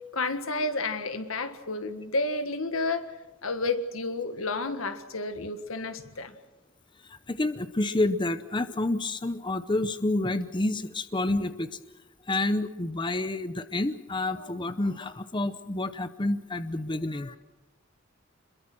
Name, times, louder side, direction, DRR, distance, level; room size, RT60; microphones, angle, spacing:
voice 1, 0.1-3.1 3.4-6.3, left 3 dB, 85° left, 8 dB, 1.8 m, -31 dB
voice 2, 7.0-11.8 12.2-17.4, left 2 dB, 25° left, 11 dB, 0.7 m, -29 dB
26.5 x 22.0 x 6.2 m, 1.1 s
head